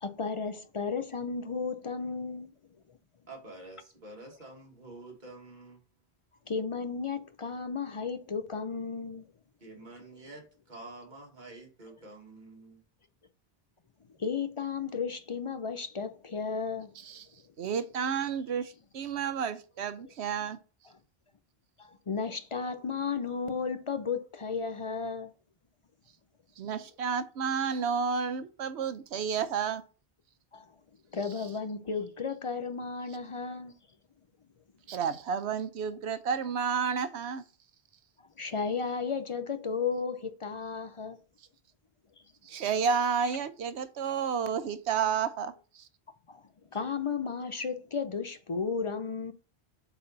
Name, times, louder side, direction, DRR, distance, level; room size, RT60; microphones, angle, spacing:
voice 1, 0.0-2.5 6.5-9.3 14.2-16.9 21.8-25.3 30.5-30.6 31.1-33.8 38.2-41.2 46.3-46.4 46.7-49.3, left 5 dB, 40° left, 0.5 m, -34 dB
voice 2, 3.3-5.8 9.6-12.8, right 2 dB, 45° right, 1.9 m, -48 dB
voice 3, 17.6-20.6 26.6-29.8 34.9-37.4 42.4-45.9, right 6 dB, 85° right, 1.0 m, -31 dB
7.8 x 4.0 x 3.9 m
omnidirectional pair, 1.1 m